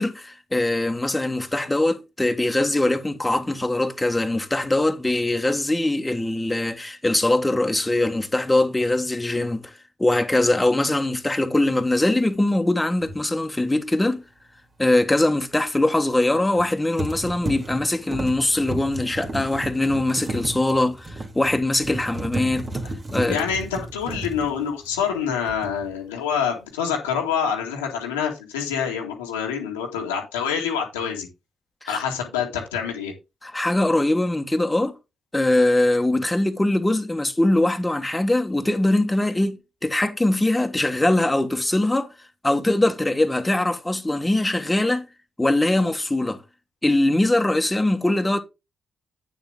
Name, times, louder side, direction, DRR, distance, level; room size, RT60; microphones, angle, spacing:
voice 1, 0.0-14.2 14.8-22.7 23.1-23.4 31.8-32.0 33.4-35.0 35.3-39.6 39.8-42.1 42.4-45.1 45.4-46.4 46.8-48.4, left 1 dB, 15° left, 1.6 m, -22 dB
sound 1, 13.0-13.2 16.3-16.7 17.0-25.2 25.5-25.9, right 1 dB, 40° right, 2.6 m, -33 dB
voice 2, 23.3-31.3 31.9-33.1, left 7 dB, 90° left, 1.9 m, -26 dB
9.0 x 7.0 x 3.8 m
hypercardioid pair, 40°, 0 cm